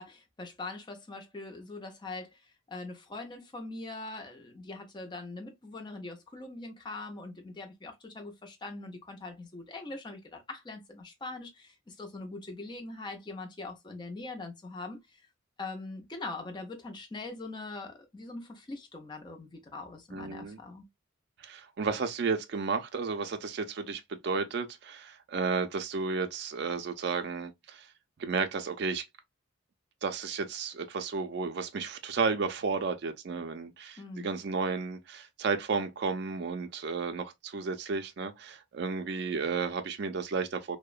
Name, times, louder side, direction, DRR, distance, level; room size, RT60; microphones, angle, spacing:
voice 1, 0.0-15.3 15.6-20.8 34.0-34.3, left 2 dB, 20° left, 0.5 m, -42 dB
voice 2, 20.1-20.6 21.4-27.9 28.2-29.0 30.0-40.8, right 4 dB, 55° right, 0.4 m, -33 dB
2.8 x 2.1 x 2.3 m
head